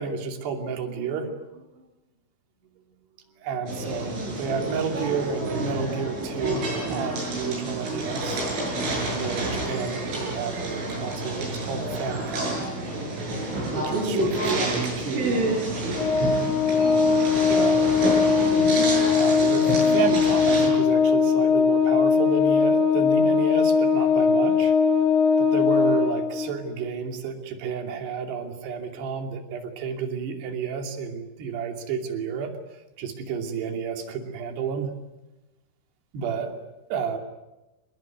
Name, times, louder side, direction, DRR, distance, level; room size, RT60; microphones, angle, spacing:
voice 1, 0.0-1.7 3.4-8.5 9.2-12.7 13.7-15.5 17.5-17.8 19.2-24.8 25.4-32.5 33.0-35.0 36.1-36.5 36.9-37.2, right 6 dB, 60° right, 5 dB, 4.6 m, -31 dB
sound 1, 3.7-20.7, right 2 dB, 85° right, 10.0 m, -29 dB
Organ, 16.0-26.7, left 5 dB, 60° left, 3.6 m, -20 dB
28.0 x 20.5 x 9.4 m, 1.0 s
omnidirectional pair, 5.5 m